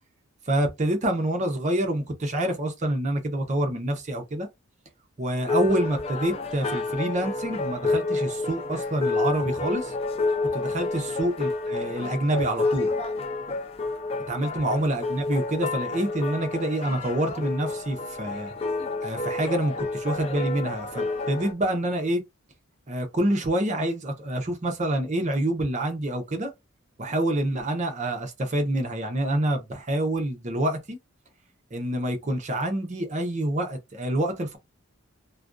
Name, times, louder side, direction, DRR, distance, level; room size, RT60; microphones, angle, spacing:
voice 1, 0.5-4.5 5.2-9.9 10.5-12.9 14.3-18.5 19.0-22.2 22.9-26.5 27.0-31.0 31.7-34.6, right 1 dB, 35° right, 0.6 m, -27 dB
sound 1, 5.4-21.5, left 3 dB, 30° left, 0.4 m, -29 dB
2.4 x 2.2 x 2.4 m
head